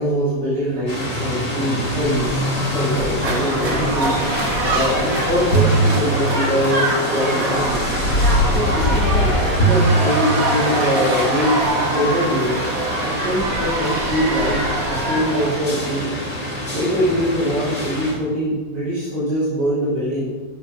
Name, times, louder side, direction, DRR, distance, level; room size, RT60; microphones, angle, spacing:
voice 1, 0.0-4.2 4.7-7.9 8.5-12.6 13.0-14.6 14.9-16.1 16.7-20.3, equal, 65° right, -8 dB, 5.7 m, -23 dB
sound 1, 0.9-18.1, left 1 dB, 20° left, 3.0 m, -27 dB
sound 2, 2.2-6.8 7.5-10.8 11.6-11.7, right 1 dB, 80° left, 3.0 m, -22 dB
sound 3, 3.2-15.5, right 2 dB, 50° right, 2.3 m, -24 dB
11.5 x 9.8 x 6.5 m, 1.3 s
omnidirectional pair, 1.9 m